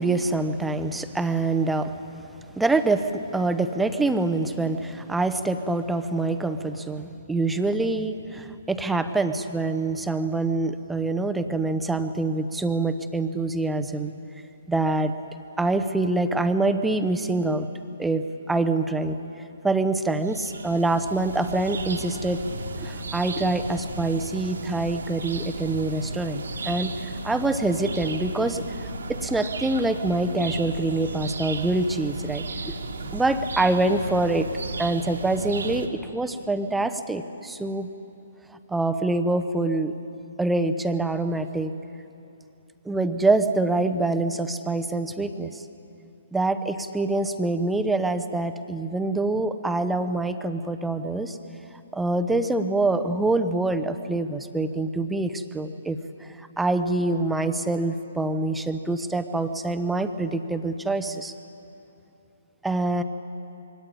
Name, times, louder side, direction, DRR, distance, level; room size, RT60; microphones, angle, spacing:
voice 1, 0.0-2.0 2.6-14.1 14.7-15.1 15.6-17.7 18.0-19.2 19.6-22.4 22.8-28.6 29.1-32.7 33.0-34.5 34.8-37.9 38.7-39.9 40.4-41.7 42.8-45.6 46.3-51.4 51.9-61.3 62.6-63.0, right 2 dB, 5° right, 9 dB, 0.9 m, -25 dB
sound 1, 20.2-35.9, right 2 dB, 65° right, 2.0 m, -34 dB
23.0 x 17.5 x 10.0 m, 2.8 s
figure-of-eight pair, 130°, 0 cm